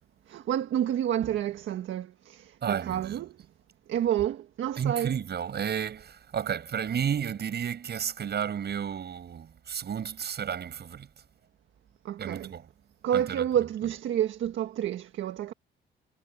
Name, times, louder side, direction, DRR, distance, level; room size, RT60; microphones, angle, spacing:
voice 1, 0.3-3.3 3.9-5.2 12.0-12.5 13.0-15.5, right 10 dB, 75° right, 1.5 m, -29 dB
voice 2, 2.6-3.3 4.7-11.1 12.2-12.7 13.1-13.9, right 8 dB, 55° right, 7.8 m, -32 dB
cardioid pair, 90°, 20 cm